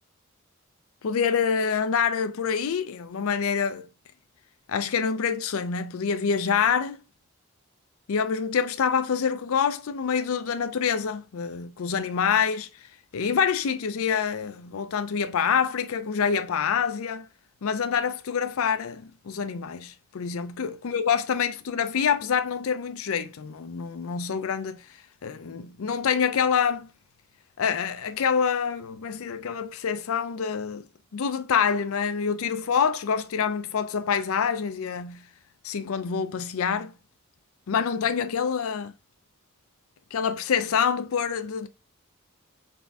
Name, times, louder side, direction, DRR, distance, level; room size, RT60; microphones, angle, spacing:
voice 1, 1.0-3.9 4.7-7.0 8.1-12.7 13.1-17.3 17.6-24.8 25.2-26.9 27.6-30.8 31.1-35.2 35.6-36.9 37.7-38.9 40.1-41.7, left 6 dB, 70° left, 0.4 m, -26 dB
4.1 x 3.4 x 3.5 m
head